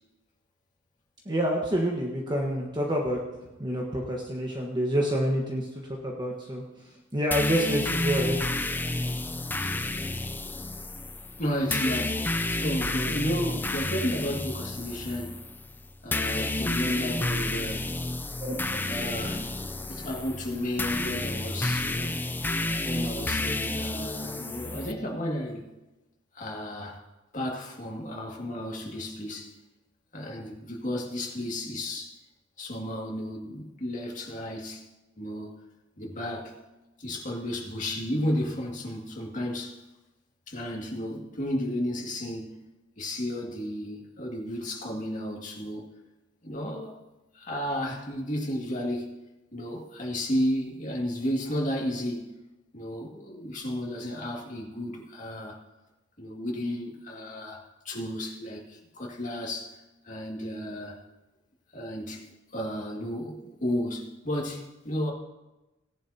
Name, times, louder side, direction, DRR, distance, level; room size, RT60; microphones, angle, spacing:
voice 1, 1.2-3.2 3.6-5.7 6.0-6.6 7.1-8.4 18.4-18.6, equal, 25° right, -1 dB, 1.3 m, -27 dB
sound 1, 7.3-24.9, left 2 dB, 10° left, 0.5 m, -30 dB
voice 2, 11.4-15.4 16.0-17.9 18.9-19.6 19.9-22.2 22.8-25.7 26.3-27.0 27.3-29.5 30.1-32.1 32.6-34.9 35.2-35.5 36.0-36.6 37.0-39.8 40.5-42.6 43.0-45.9 46.4-47.0 47.3-49.2 49.5-52.3 52.7-55.6 56.2-57.6 57.8-59.8 60.0-61.0 61.7-62.2 62.5-65.1, equal, 40° left, -1 dB, 2.2 m, -33 dB
17.5 x 11.0 x 2.8 m, 1.0 s
head